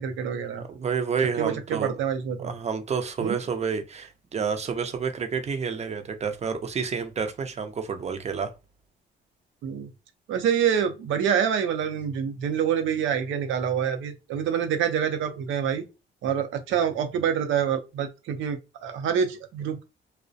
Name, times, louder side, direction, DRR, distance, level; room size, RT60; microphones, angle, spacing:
voice 1, 0.0-0.6 1.4-2.5 3.2-3.4 9.6-9.9 10.3-15.8 16.2-19.8, right 8 dB, 80° right, 0.6 m, -26 dB
voice 2, 0.6-1.9 2.4-8.5, right 6 dB, 35° right, 0.5 m, -29 dB
2.3 x 2.0 x 2.6 m
cardioid pair, 90°, 20 cm